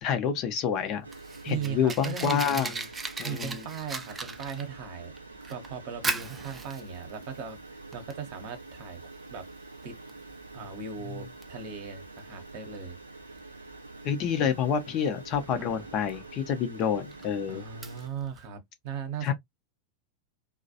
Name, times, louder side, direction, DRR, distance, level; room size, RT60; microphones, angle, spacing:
voice 1, 0.0-1.1 1.4-2.7 3.2-3.6 14.0-17.6 19.2-19.3, left 8 dB, 35° left, 0.5 m, -28 dB
Fire, 0.8-18.4, right 4 dB, 15° right, 0.4 m, -40 dB
sound 1, 1.0-18.1, right 2 dB, 80° right, 0.5 m, -46 dB
voice 2, 1.5-2.9 3.2-9.5 9.8-9.9 10.5-13.0 17.5-19.3, right 7 dB, 45° right, 0.8 m, -38 dB
2.3 x 2.0 x 2.7 m
figure-of-eight pair, 90°, 0 cm